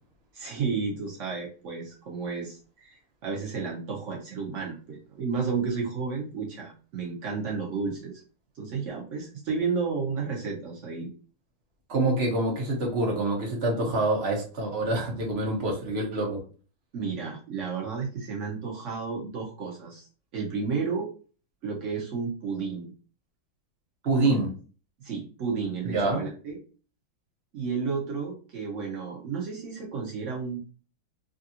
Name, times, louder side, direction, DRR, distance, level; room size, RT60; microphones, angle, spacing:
voice 1, 0.3-8.2 8.6-11.1 16.9-20.1 20.3-21.1 21.6-22.9 24.2-24.4 25.0-26.6 27.5-30.7, right 5 dB, 80° right, -3 dB, 0.6 m, -32 dB
voice 2, 11.9-16.4 24.0-24.5 25.8-26.2, right 2 dB, 45° right, -1 dB, 0.8 m, -26 dB
3.4 x 2.5 x 2.7 m, 0.38 s
omnidirectional pair, 2.3 m